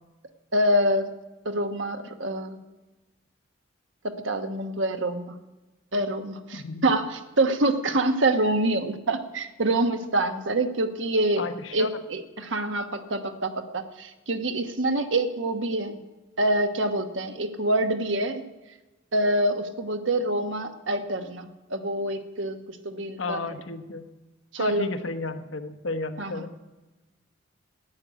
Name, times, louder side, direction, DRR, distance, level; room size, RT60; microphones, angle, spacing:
voice 1, 0.5-1.1 1.4-2.6 4.0-5.4 5.9-11.4 11.7-16.0 16.4-18.4 19.1-23.4 24.5-24.9 26.2-26.4, right 1 dB, 75° right, 7 dB, 1.2 m, -26 dB
voice 2, 6.5-6.9 11.4-11.9 23.2-24.1 24.6-26.5, left 3 dB, 80° left, 7 dB, 1.0 m, -32 dB
11.0 x 9.3 x 9.1 m, 1.1 s
head